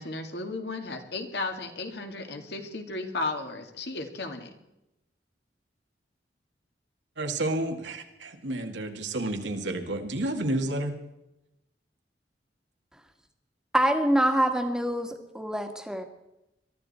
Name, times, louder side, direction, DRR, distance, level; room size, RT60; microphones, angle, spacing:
voice 1, 0.0-4.5, left 3 dB, 65° left, 5 dB, 2.2 m, -34 dB
voice 2, 7.2-11.0, right 1 dB, 90° right, 4 dB, 2.1 m, -30 dB
voice 3, 13.7-16.0, right 1 dB, 5° right, 5 dB, 1.6 m, -25 dB
22.5 x 13.5 x 4.3 m, 0.90 s
head